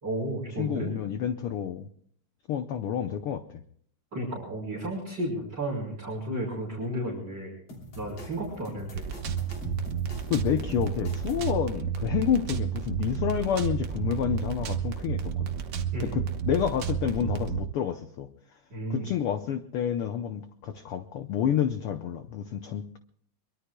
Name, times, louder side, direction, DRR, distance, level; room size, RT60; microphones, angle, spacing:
voice 1, 0.0-0.9 4.1-7.5 8.0-9.1 15.9-16.1 18.7-19.1, right 1 dB, 35° right, -1 dB, 4.5 m, -33 dB
voice 2, 0.6-1.9 2.5-3.6 10.3-15.5 16.1-18.3 18.9-23.0, left 9 dB, 80° left, 9 dB, 1.2 m, -29 dB
sound 1, 7.7-11.5, left 1 dB, 45° left, 3.8 m, -44 dB
sound 2, 8.9-17.6, right 8 dB, 75° right, 0.9 m, -31 dB
23.5 x 23.0 x 2.2 m, 0.62 s
omnidirectional pair, 3.4 m